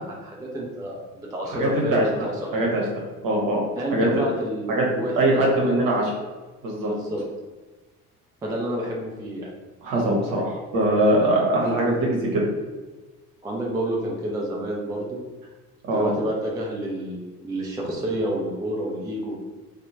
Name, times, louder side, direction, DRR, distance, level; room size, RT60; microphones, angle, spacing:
voice 1, 0.0-2.6 3.7-5.8 6.8-7.2 8.4-9.5 13.4-15.2 15.9-19.4, right 1 dB, 10° right, -2 dB, 0.4 m, -29 dB
voice 2, 1.5-2.8 3.2-3.6 3.9-4.1 4.7-6.1 6.6-6.9 9.8-12.4 15.9-16.1, right 1 dB, 45° right, -3 dB, 1.1 m, -22 dB
2.7 x 2.4 x 2.7 m, 1.2 s
figure-of-eight pair, 55°, 46 cm